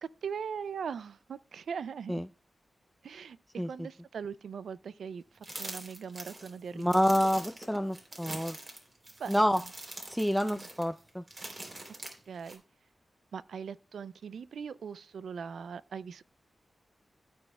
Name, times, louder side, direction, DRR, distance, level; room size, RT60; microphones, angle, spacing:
voice 1, 0.0-2.2 3.0-3.4 3.6-7.0 9.2-9.4 10.4-10.7 12.3-12.6 13.3-16.2, right 6 dB, 90° right, 0.3 m, -40 dB
sound 1, 5.4-12.6, right 2 dB, 45° right, 3.1 m, -44 dB
voice 2, 6.7-8.6 9.3-9.6 10.1-11.2, equal, ahead, 0.4 m, -28 dB
15.0 x 6.2 x 2.2 m
cardioid pair, 60°, 0 cm